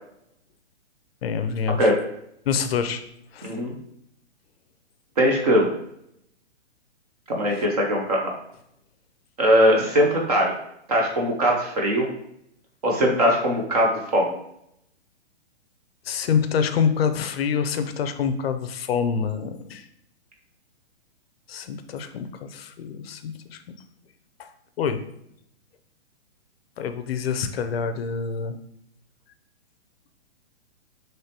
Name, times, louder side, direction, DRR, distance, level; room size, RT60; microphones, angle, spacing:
voice 1, 1.2-1.9 2.5-3.0 3.3-3.5 16.1-19.8 21.5-23.6 24.4-24.5 24.8-25.0 26.8-28.6, left 6 dB, 60° left, 9 dB, 0.5 m, -26 dB
voice 2, 3.4-3.7 5.2-5.7 7.3-8.3 9.4-10.5 10.9-12.1 12.8-14.3, equal, 35° right, 0 dB, 0.6 m, -20 dB
4.6 x 3.1 x 2.9 m, 0.76 s
hypercardioid pair, 165°, 34 cm